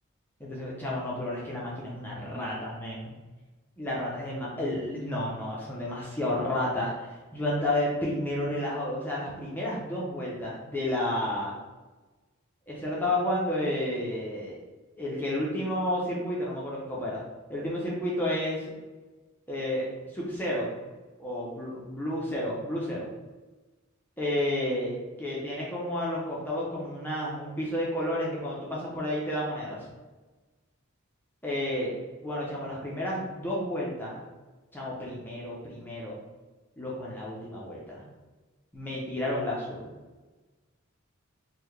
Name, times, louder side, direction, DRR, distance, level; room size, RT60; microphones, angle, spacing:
voice 1, 0.4-3.1 3.8-11.6 12.7-14.6 15.0-17.2 17.5-18.6 19.5-19.9 20.1-20.7 21.2-23.1 24.2-29.9 31.4-31.9 32.2-34.3 34.7-36.2 36.8-38.0 38.7-39.9, left 1 dB, 10° left, -5 dB, 0.6 m, -31 dB
3.8 x 2.2 x 3.2 m, 1.2 s
head